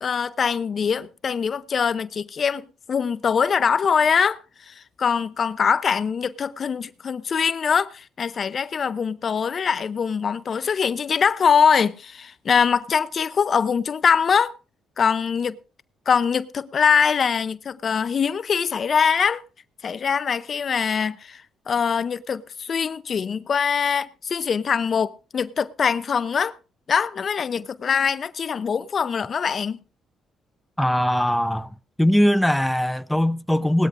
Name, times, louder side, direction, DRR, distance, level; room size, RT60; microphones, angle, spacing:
voice 1, 0.0-14.5 15.0-15.6 16.1-19.4 19.8-21.4 21.7-26.6 26.9-29.8, left 6 dB, 50° left, 0.6 m, -23 dB
voice 2, 30.8-31.7 32.0-33.9, equal, 5° left, 0.6 m, -20 dB
19.0 x 13.0 x 2.5 m
cardioid pair, 90°, 0 cm